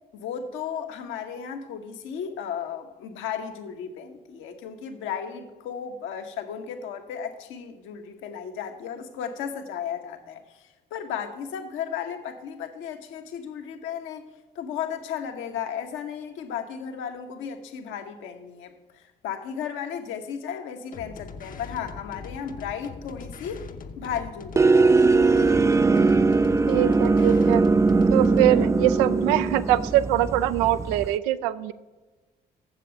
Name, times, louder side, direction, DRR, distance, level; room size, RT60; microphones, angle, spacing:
voice 1, 0.1-10.6 10.9-14.3 14.5-23.7 24.0-25.3, left 8 dB, 70° left, 6 dB, 1.1 m, -35 dB
sound 1, 20.9-28.6, left 5 dB, 40° left, 0.8 m, -41 dB
sound 2, 24.6-31.1, right 3 dB, 15° right, 0.3 m, -20 dB
voice 2, 26.7-27.6 28.1-31.7, right 13 dB, 75° right, 14 dB, 0.5 m, -23 dB
7.5 x 7.5 x 6.7 m, 1.2 s
hypercardioid pair, 45°, 21 cm